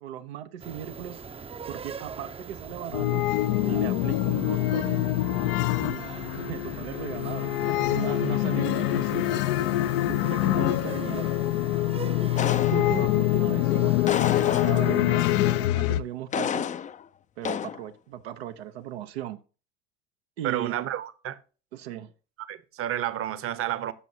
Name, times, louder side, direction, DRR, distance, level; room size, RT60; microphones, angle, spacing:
voice 1, 0.0-1.2 1.7-3.3 3.6-5.2 5.8-9.4 10.0-11.3 12.7-14.0 14.3-15.3 15.7-16.6 17.4-19.4 20.4-20.9 21.7-22.1, right 11 dB, 85° right, 0.8 m, -37 dB
sound 1, 0.6-15.7, right 5 dB, 20° right, 0.6 m, -41 dB
sound 2, 2.9-16.0, left 16 dB, 70° left, 0.6 m, -25 dB
sound 3, 12.4-13.2 14.1-15.1 16.3-17.0 17.4-17.8, left 8 dB, 25° left, 0.4 m, -30 dB
voice 2, 20.4-21.4 22.5-23.9, right 12 dB, 45° right, 1.0 m, -30 dB
14.0 x 6.2 x 2.8 m
hypercardioid pair, 75°, 31 cm